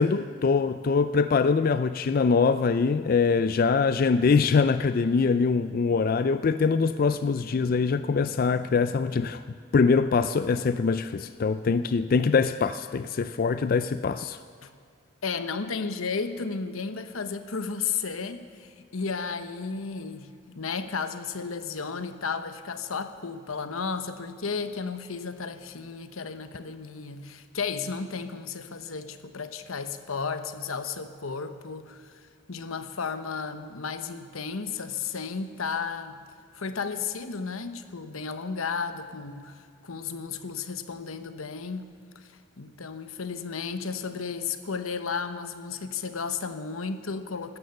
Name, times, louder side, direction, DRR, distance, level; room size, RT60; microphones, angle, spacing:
voice 1, 0.0-9.4 9.7-14.4, left 5 dB, 45° left, 12 dB, 0.3 m, -23 dB
voice 2, 15.2-32.2 32.5-36.2 36.5-41.9 42.1-47.6, left 5 dB, 85° left, 10 dB, 1.0 m, -33 dB
16.0 x 13.0 x 6.8 m, 2.3 s
head